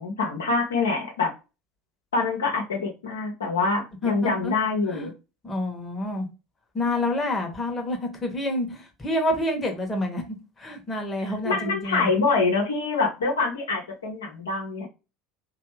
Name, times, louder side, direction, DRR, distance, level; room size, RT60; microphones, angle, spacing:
voice 1, 0.0-1.3 2.1-5.1 11.4-14.9, left 4 dB, 70° left, 0.9 m, -25 dB
voice 2, 4.0-4.5 4.9-5.1 5.4-6.3 6.7-10.2 10.6-12.1, left 1 dB, 20° left, 1.0 m, -28 dB
3.1 x 2.4 x 3.0 m
figure-of-eight pair, 70°, 0 cm